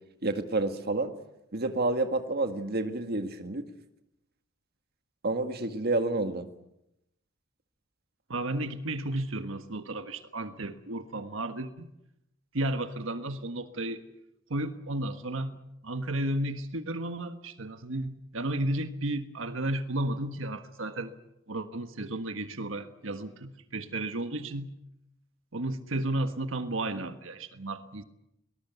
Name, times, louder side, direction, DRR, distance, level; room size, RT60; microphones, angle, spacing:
voice 1, 0.2-1.1 1.5-3.7 5.2-6.5, right 2 dB, 55° right, 7 dB, 1.8 m, -29 dB
voice 2, 8.3-11.9 12.5-14.0 14.5-15.6 15.8-21.1 21.5-24.7 25.5-28.0, right 1 dB, 85° right, 8 dB, 1.5 m, -33 dB
23.0 x 19.5 x 8.2 m, 0.84 s
head